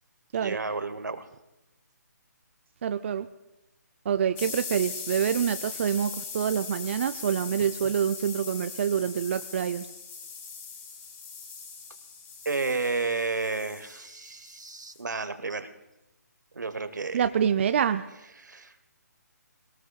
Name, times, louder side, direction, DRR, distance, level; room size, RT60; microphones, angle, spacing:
voice 1, 0.4-1.2 12.4-15.7 16.5-17.2 18.4-18.7, right 3 dB, 85° right, 11 dB, 1.2 m, -31 dB
voice 2, 2.8-3.3 4.1-9.9 17.1-18.1, right 8 dB, 40° right, 10 dB, 0.4 m, -26 dB
sound 1, 4.4-15.0, left 5 dB, 15° left, 1.6 m, -40 dB
21.5 x 18.5 x 2.3 m, 0.98 s
figure-of-eight pair, 150°, 10 cm